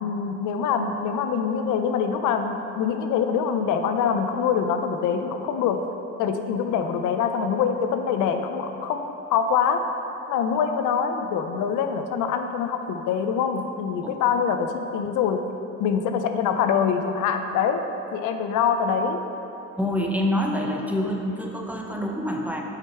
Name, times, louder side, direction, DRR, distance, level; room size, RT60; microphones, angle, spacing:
voice 1, 0.0-5.8 6.2-9.8 10.3-15.4 15.8-17.8 18.1-19.2, left 7 dB, 85° left, 7 dB, 0.5 m, -24 dB
voice 2, 19.8-22.6, left 1 dB, 5° right, 0 dB, 0.7 m, -26 dB
6.1 x 5.0 x 4.5 m, 2.9 s
cardioid pair, 90°, 30 cm